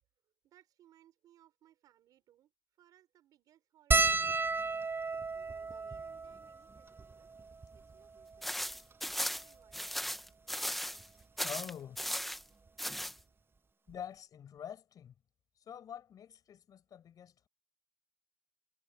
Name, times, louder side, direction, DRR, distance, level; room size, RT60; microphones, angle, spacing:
voice 1, 0.4-2.5 2.8-4.9 5.3-7.3 7.7-8.8 9.1-10.1, right 12 dB, 80° right, 4.9 m, -66 dB
sound 1, 3.9-8.5 9.3-9.4 9.5-9.7 11.0-11.2 12.7-12.8 13.0-13.2, right 4 dB, 35° right, 1.2 m, -34 dB
sound 2, 8.4-11.1 11.4-12.4 12.8-13.1, equal, ahead, 1.7 m, -37 dB
voice 2, 11.4-12.0 13.9-15.1 15.6-17.5, left 9 dB, 75° left, 7.1 m, -46 dB
hypercardioid pair, 40°, 6 cm